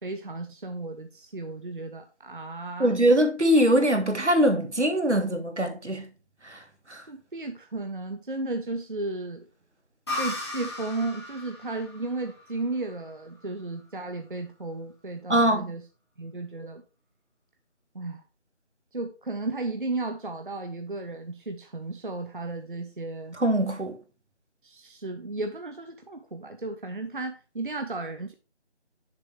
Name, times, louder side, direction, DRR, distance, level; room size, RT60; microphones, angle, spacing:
voice 1, 0.0-2.9 7.1-9.5 10.2-15.8 16.2-16.8 17.9-18.2 18.9-23.4 24.6-28.3, right 2 dB, 50° right, 0.7 m, -34 dB
voice 2, 2.8-6.1 6.4-6.6 6.9-7.0 15.3-15.7 23.3-24.0, right 1 dB, 80° right, 1.8 m, -22 dB
sound 1, 10.1-13.6, left 2 dB, 25° left, 2.2 m, -37 dB
6.8 x 6.7 x 3.2 m
figure-of-eight pair, 165°, 34 cm